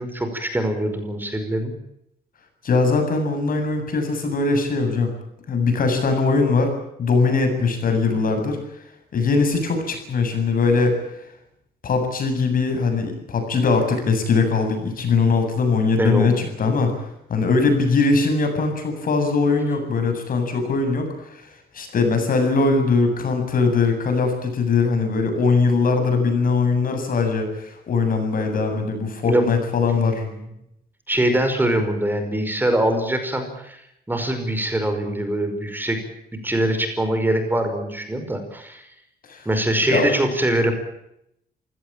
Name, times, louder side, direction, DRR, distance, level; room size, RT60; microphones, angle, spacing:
voice 1, 0.0-1.7 16.0-16.5 28.7-29.5 29.9-30.4 31.1-33.8 34.1-36.0 36.4-38.9 39.4-40.7, right 1 dB, 10° right, 7 dB, 5.2 m, -23 dB
voice 2, 2.6-5.1 5.5-6.7 7.0-8.6 9.1-10.9 11.8-16.9 17.3-21.1 21.7-30.2 39.3-39.4 39.9-40.1, left 4 dB, 60° left, 6 dB, 7.6 m, -21 dB
27.5 x 17.0 x 8.8 m, 0.80 s
cardioid pair, 125°, 16 cm